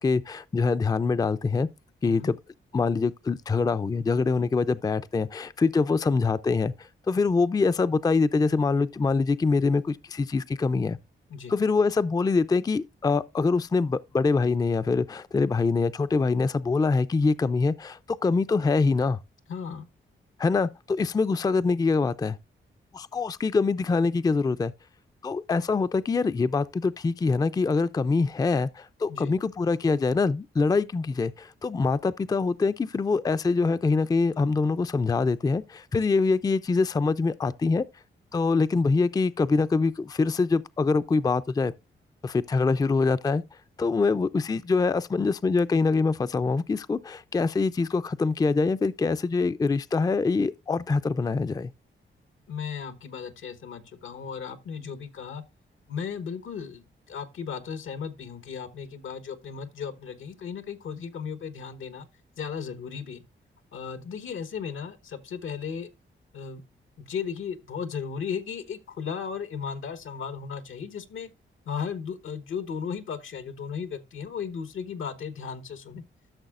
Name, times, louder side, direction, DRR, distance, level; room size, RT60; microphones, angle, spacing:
voice 1, 0.0-1.7 2.0-2.4 2.7-11.0 11.5-19.2 20.4-22.4 22.9-24.7 25.2-37.8 38.3-41.7 42.2-43.4 43.8-51.7, left 4 dB, 20° left, 0.4 m, -24 dB
voice 2, 19.5-19.9 29.1-29.4 52.5-55.4 55.9-62.1 62.4-63.2 63.7-65.9 66.3-66.6 67.0-71.3 71.7-76.0, left 6 dB, 85° left, 1.1 m, -35 dB
13.0 x 6.3 x 2.4 m
cardioid pair, 85°, 20 cm